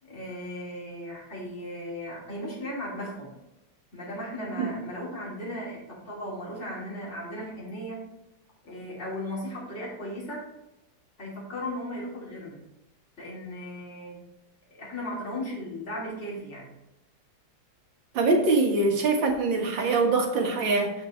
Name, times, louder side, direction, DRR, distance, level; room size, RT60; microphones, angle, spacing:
voice 1, 0.0-3.3 3.9-8.1 8.6-10.4 11.2-12.6 13.2-14.2 14.7-16.7, left 1 dB, 35° left, -6 dB, 3.4 m, -36 dB
voice 2, 18.1-20.9, right 3 dB, 75° right, 2 dB, 2.3 m, -23 dB
14.5 x 5.3 x 3.2 m, 0.92 s
omnidirectional pair, 2.1 m